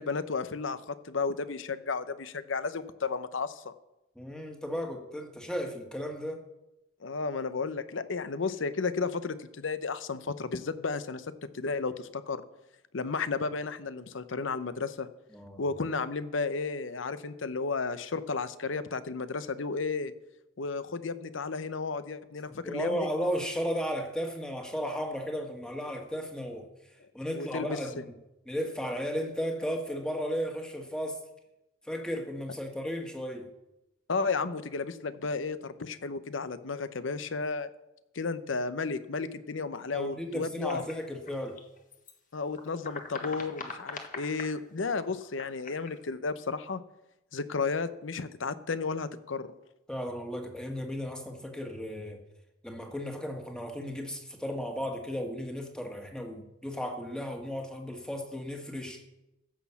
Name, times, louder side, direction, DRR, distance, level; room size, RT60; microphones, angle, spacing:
voice 1, 0.0-3.7 7.0-11.3 11.5-12.4 12.9-15.1 15.6-20.1 20.6-23.1 27.3-28.0 34.1-37.7 38.1-40.8 42.3-46.8 47.3-49.5, left 4 dB, 75° left, 13 dB, 0.8 m, -33 dB
voice 2, 4.1-6.4 15.3-15.6 22.6-26.7 27.1-28.0 28.5-31.2 31.8-33.5 39.9-41.6 49.9-52.2 52.6-59.0, equal, 5° left, 2 dB, 1.6 m, -35 dB
sound 1, 40.7-42.1 42.4-44.6 45.0-46.1, left 4 dB, 45° left, 1.5 m, -42 dB
15.5 x 6.3 x 7.1 m, 0.93 s
head